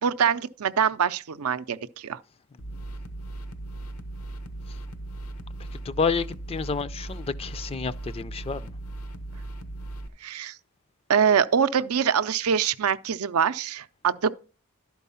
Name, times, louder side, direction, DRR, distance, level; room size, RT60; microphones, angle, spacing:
voice 1, 0.0-2.2 10.2-10.6 11.1-14.3, right 7 dB, 90° right, 0.5 m, -24 dB
sound 1, 2.6-10.1, right 2 dB, 90° left, 0.9 m, -38 dB
voice 2, 5.6-8.7, left 5 dB, 25° left, 0.3 m, -30 dB
11.5 x 4.7 x 5.5 m
head